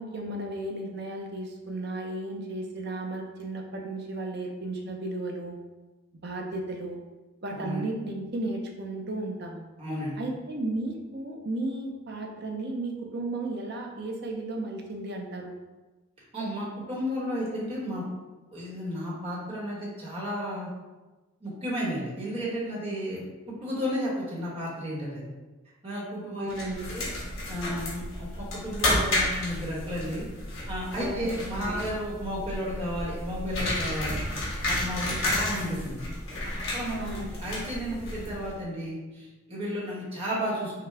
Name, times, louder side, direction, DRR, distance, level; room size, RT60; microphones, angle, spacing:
voice 1, 0.0-5.6 6.2-7.0 7.4-9.6 10.2-15.5 26.3-27.0 31.0-31.7 37.0-37.3, right 2 dB, 50° right, 1 dB, 0.6 m, -34 dB
voice 2, 7.5-7.8 9.8-10.2 16.3-18.0 18.5-20.7 21.4-23.2 23.6-25.3 25.8-26.5 26.9-27.0 27.5-30.2 30.7-34.2 34.6-36.0 36.3-36.4 36.7-40.9, equal, 25° right, -6 dB, 1.3 m, -33 dB
sound 1, 26.5-38.6, left 1 dB, 65° left, 1.3 m, -32 dB
5.7 x 2.3 x 3.3 m, 1.2 s
head